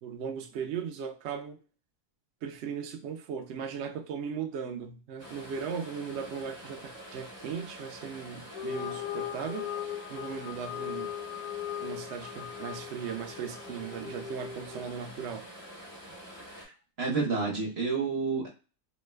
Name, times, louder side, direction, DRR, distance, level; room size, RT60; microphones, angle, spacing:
voice 1, 0.0-1.6 2.4-9.7 10.1-11.1 11.8-15.5, right 7 dB, 75° right, 0.6 m, -37 dB
sound 1, 5.2-16.6, equal, 15° right, 0.8 m, -47 dB
sound 2, 8.4-15.0, left 9 dB, 70° left, 0.9 m, -39 dB
voice 2, 16.5-18.5, right 4 dB, 45° right, 1.0 m, -30 dB
3.0 x 2.2 x 3.2 m
omnidirectional pair, 1.7 m